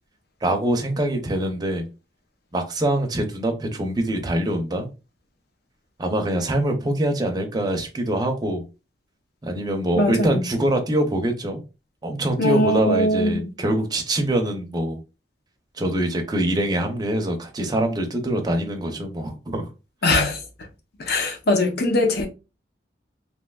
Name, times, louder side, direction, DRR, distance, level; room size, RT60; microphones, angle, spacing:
voice 1, 0.4-1.9 2.5-4.9 6.0-8.6 9.4-11.6 12.0-15.0 15.8-19.7, right 1 dB, 20° right, 0.6 m, -24 dB
voice 2, 10.0-10.4 12.4-13.5 20.0-20.4 21.0-22.3, left 1 dB, 60° left, 0.7 m, -21 dB
3.2 x 2.9 x 2.2 m
head